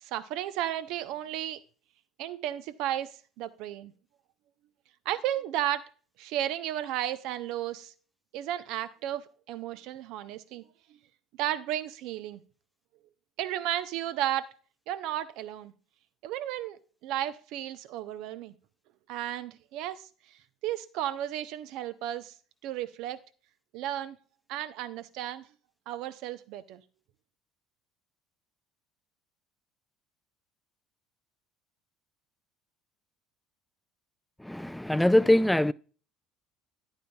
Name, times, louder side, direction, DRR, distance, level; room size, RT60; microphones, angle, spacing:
voice 1, 0.0-1.6 2.2-3.9 5.0-5.9 6.2-7.9 8.3-10.6 11.4-12.4 13.4-14.5 14.9-15.7 16.2-18.5 19.1-22.3 22.6-23.2 23.7-24.2 24.5-25.5 25.9-26.8, right 12 dB, 65° right, 0.7 m, -34 dB
voice 2, 34.4-35.7, left 1 dB, 5° left, 0.3 m, -23 dB
11.0 x 9.1 x 2.3 m
hypercardioid pair, 65°, 0 cm